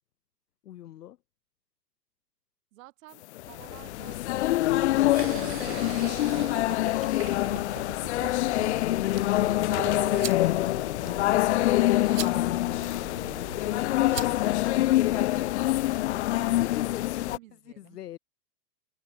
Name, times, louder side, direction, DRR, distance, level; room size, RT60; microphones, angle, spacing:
voice 1, 0.6-1.2 16.6-17.4 17.7-18.2, left 12 dB, 70° left, 0.9 m, -41 dB
voice 2, 2.7-7.0 7.3-9.6 10.3-15.5 15.8-16.9 17.2-18.0, right 18 dB, 50° right, 4.7 m, -54 dB
sound 1, 3.4-17.4, left 16 dB, 45° left, 0.5 m, -25 dB
sound 2, 5.1-10.5, right 19 dB, 25° right, 1.1 m, -41 dB
sound 3, 8.5-15.3, right 8 dB, 80° right, 1.9 m, -42 dB
hypercardioid pair, 110°, 49 cm